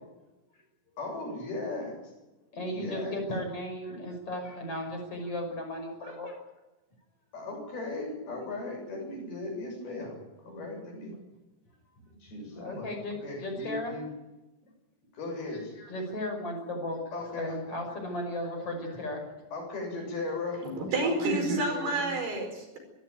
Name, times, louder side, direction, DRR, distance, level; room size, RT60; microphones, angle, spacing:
voice 1, 1.0-2.0 2.7-3.2 3.8-4.0 7.3-11.1 12.1-12.9 13.2-14.0 15.1-15.9 17.1-17.6 18.8-19.0 19.5-20.8, left 2 dB, 60° left, 2 dB, 9.0 m, -37 dB
voice 2, 2.5-6.4 12.6-13.9 15.9-17.0 17.4-19.2, left 1 dB, 30° left, 3 dB, 6.4 m, -35 dB
voice 3, 20.6-22.8, right 2 dB, 60° right, 4 dB, 6.9 m, -29 dB
25.5 x 15.0 x 9.2 m, 1.0 s
omnidirectional pair, 5.1 m